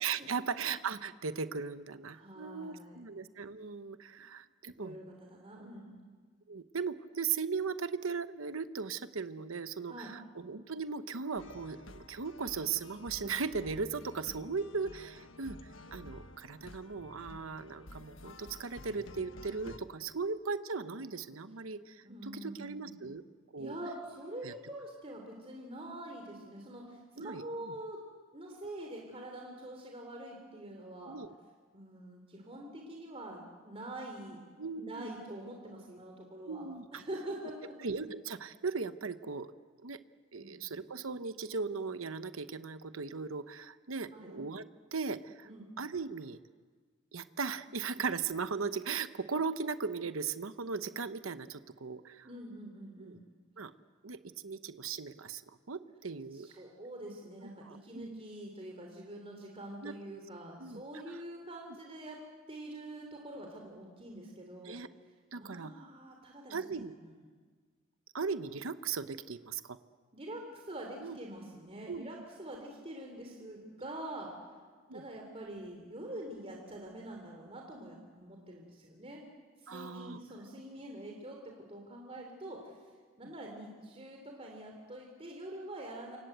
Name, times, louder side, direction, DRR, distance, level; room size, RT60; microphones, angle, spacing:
voice 1, 0.0-5.0 6.5-15.6 15.9-23.2 23.5-23.8 24.4-24.5 27.2-27.7 31.1-31.3 34.6-35.1 36.5-36.9 37.8-39.5 39.8-40.0 40.3-44.6 44.9-45.5 45.8-46.4 47.1-52.3 53.0-53.2 53.6-53.7 54.0-54.2 54.4-56.5 57.6-58.2 59.8-59.9 60.6-61.2 64.6-64.9 65.3-65.7 66.5-66.9 68.1-69.8 71.0-71.2 71.9-72.1 74.9-75.0 79.7-80.2, right 5 dB, 90° right, 12 dB, 0.9 m, -38 dB
voice 2, 2.1-3.1 4.7-6.0 9.9-10.1 16.0-16.2 22.0-23.0 23.6-28.0 28.3-31.2 31.7-34.4 34.7-36.6 36.9-37.8 40.4-40.6 44.1-44.4 45.4-45.7 52.2-53.2 56.3-62.2 62.5-64.8 65.3-67.2 70.1-74.3 74.9-79.3 79.6-82.7 83.2-86.2, right 1 dB, 30° right, 1 dB, 3.4 m, -45 dB
sound 1, 11.4-19.8, left 2 dB, 70° left, 1.4 m, -51 dB
28.5 x 26.0 x 8.0 m, 1.6 s
head